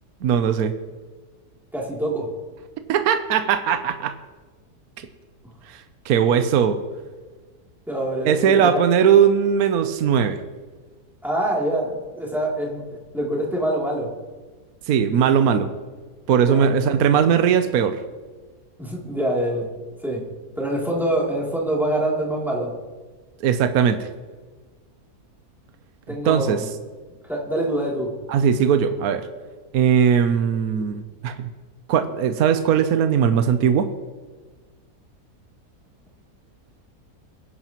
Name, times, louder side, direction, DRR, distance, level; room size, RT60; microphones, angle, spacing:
voice 1, 0.2-0.7 2.9-4.1 5.7-6.8 8.2-10.4 14.9-15.7 16.3-18.0 23.4-24.1 26.2-26.6 28.3-29.3 29.7-31.5 31.9-33.9, right 8 dB, 70° right, 8 dB, 1.2 m, -19 dB
voice 2, 1.7-2.3 7.9-8.8 11.2-14.1 16.4-16.7 18.8-19.7 20.0-20.3 20.6-22.7 26.1-26.7 27.3-28.1, right 1 dB, ahead, -4 dB, 2.9 m, -25 dB
22.5 x 11.0 x 3.0 m, 1.3 s
omnidirectional pair, 1.7 m